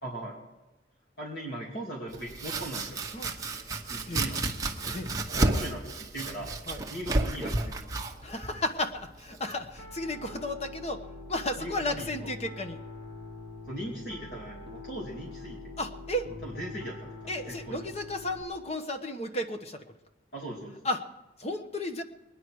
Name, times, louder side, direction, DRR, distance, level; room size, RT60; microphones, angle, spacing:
voice 1, 0.0-0.4 1.2-3.0 3.9-4.4 4.8-6.6 6.9-7.8 11.6-12.3 13.7-15.7 16.4-17.8 20.3-20.7, right 1 dB, 65° left, -4 dB, 2.8 m, -39 dB
Domestic sounds home sounds, 2.1-9.8, right 2 dB, 20° right, 1.0 m, -32 dB
voice 2, 8.2-11.0 11.3-12.8 15.8-16.3 17.3-19.8 20.8-21.0 21.4-22.0, left 1 dB, 35° left, 7 dB, 1.1 m, -33 dB
Piano, 9.8-18.4, left 2 dB, 80° left, 1.7 m, -44 dB
22.0 x 10.0 x 4.7 m, 1.1 s
head